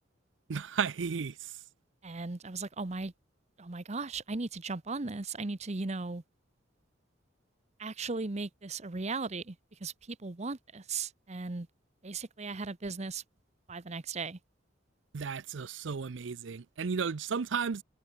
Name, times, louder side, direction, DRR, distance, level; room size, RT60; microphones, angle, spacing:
voice 1, 0.5-1.6 15.1-17.8, right 6 dB, 70° right, 0.5 m, -34 dB
voice 2, 2.0-3.1 3.6-6.2 7.8-11.7 12.0-13.2 13.7-14.4, right 3 dB, 35° right, 0.9 m, -37 dB
head